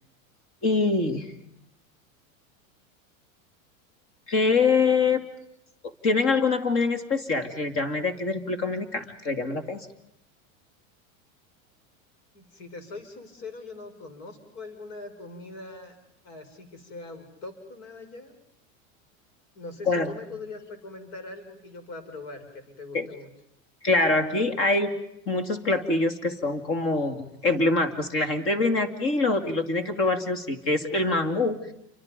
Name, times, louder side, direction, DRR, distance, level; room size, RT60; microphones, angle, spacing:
voice 1, 0.6-1.4 4.3-5.2 5.8-9.9 19.9-20.2 22.9-23.1 23.8-25.0 25.3-31.7, left 3 dB, 30° left, 9 dB, 2.7 m, -24 dB
voice 2, 12.3-16.0 16.2-18.3 19.5-23.3, left 3 dB, 50° left, 7 dB, 5.6 m, -42 dB
29.5 x 24.5 x 5.3 m, 0.77 s
supercardioid pair, 160°, 41 cm